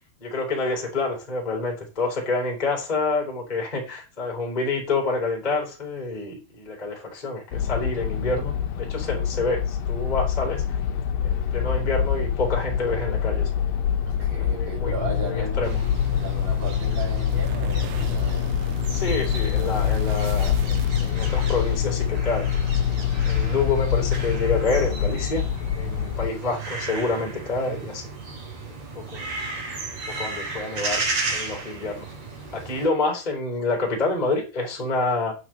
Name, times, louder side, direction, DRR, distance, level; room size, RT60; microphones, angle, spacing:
voice 1, 0.2-10.8 11.2-13.5 14.5-15.7 18.9-25.4 25.7-28.1 28.8-29.3 30.2-31.0 31.3-32.1 32.5-35.3, left 3 dB, 10° left, 3.5 m, -28 dB
sound 1, 7.5-26.3, left 9 dB, 65° left, 2.5 m, -25 dB
voice 2, 14.2-18.5, right 4 dB, 60° right, 5.6 m, -35 dB
sound 2, 15.6-32.9, right 3 dB, 40° right, 4.0 m, -35 dB
sound 3, 17.3-21.5, right 10 dB, 90° right, 3.5 m, -38 dB
9.8 x 6.1 x 7.6 m
omnidirectional pair, 5.6 m